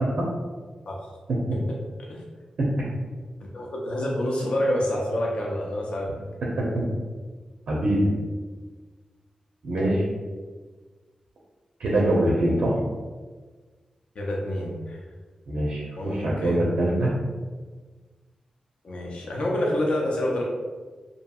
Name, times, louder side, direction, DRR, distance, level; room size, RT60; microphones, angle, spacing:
voice 1, 3.5-6.1 14.2-15.0 16.0-16.6 18.8-20.4, left 1 dB, 60° left, -3 dB, 0.5 m, -27 dB
voice 2, 7.7-8.1 9.6-10.0 11.8-12.8 15.5-17.1, right 1 dB, 70° right, -4 dB, 0.5 m, -23 dB
2.8 x 2.7 x 2.2 m, 1.4 s
wide cardioid pair, 140°, 2 cm